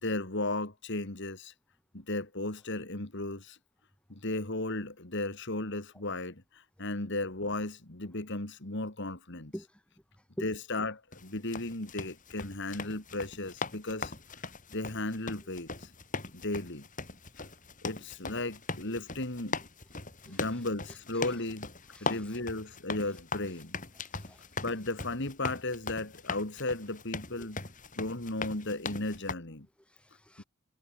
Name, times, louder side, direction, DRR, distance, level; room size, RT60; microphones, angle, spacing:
voice 1, 0.0-1.5 1.9-3.6 4.1-9.5 10.4-14.1 14.7-15.9 16.3-16.9 17.4-17.5 17.8-19.6 20.3-21.7 22.0-23.8 24.6-27.6 27.9-29.7 30.4-30.5, left 2 dB, 55° left, 2.6 m, -35 dB
voice 2, 10.2-10.5 20.2-20.6 21.1-21.4 21.9-22.4 23.1-23.2 24.0-24.7 27.3-27.5 29.8-30.4, equal, 5° left, 5.2 m, -47 dB
sound 1, 11.1-29.3, left 4 dB, 35° left, 4.7 m, -40 dB
head